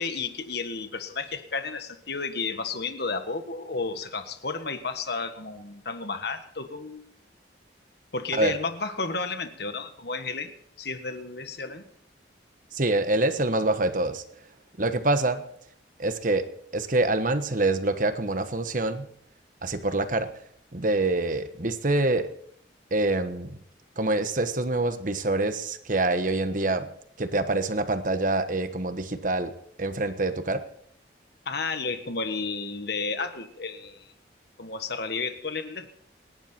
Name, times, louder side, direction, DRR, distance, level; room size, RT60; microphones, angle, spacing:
voice 1, 0.0-7.1 8.1-10.5 10.8-11.9 31.4-34.1 34.6-36.0, left 4 dB, 60° left, 8 dB, 1.6 m, -32 dB
voice 2, 12.7-14.2 14.8-15.4 16.0-16.5 16.7-19.1 19.6-20.3 20.7-22.3 22.9-23.6 24.0-26.9 27.2-29.5 29.8-30.6, right 2 dB, 45° right, 9 dB, 1.3 m, -25 dB
27.5 x 10.5 x 4.5 m, 0.67 s
head